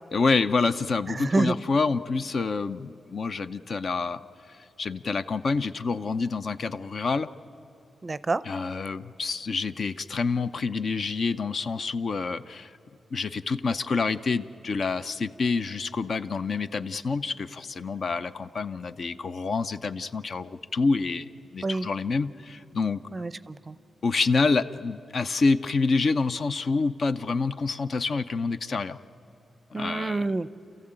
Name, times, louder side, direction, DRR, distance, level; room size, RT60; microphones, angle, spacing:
voice 1, 0.1-4.2 4.8-7.3 8.4-12.7 13.1-23.0 24.0-29.0 29.7-30.3, left 4 dB, 50° left, 12 dB, 0.6 m, -27 dB
voice 2, 1.1-1.6 8.0-8.4 21.6-21.9 23.1-23.8 29.7-30.5, right 3 dB, 25° right, 16 dB, 0.5 m, -27 dB
29.0 x 14.5 x 8.9 m, 2.9 s
wide cardioid pair, 130°, 0 cm